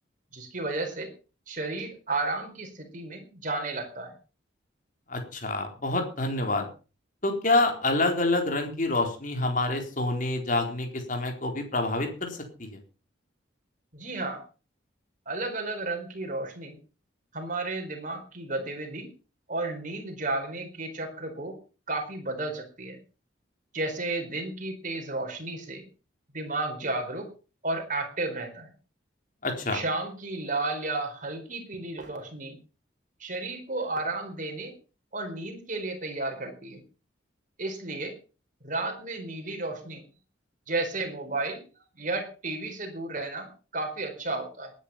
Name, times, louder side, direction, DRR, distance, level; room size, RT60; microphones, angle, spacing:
voice 1, 0.3-1.1 1.5-4.1 13.9-14.4 15.3-16.8 17.3-19.1 19.5-21.6 21.9-23.0 23.7-25.9 26.3-27.3 27.6-28.7 29.7-32.6 33.2-34.7 35.1-36.8 37.6-38.2 38.6-40.0 40.7-41.6 42.0-44.7, right 2 dB, 40° right, 5 dB, 4.6 m, -33 dB
voice 2, 5.1-6.7 7.2-12.8 29.4-29.8, left 2 dB, 45° left, 4 dB, 4.1 m, -27 dB
19.5 x 10.5 x 5.7 m, 0.36 s
head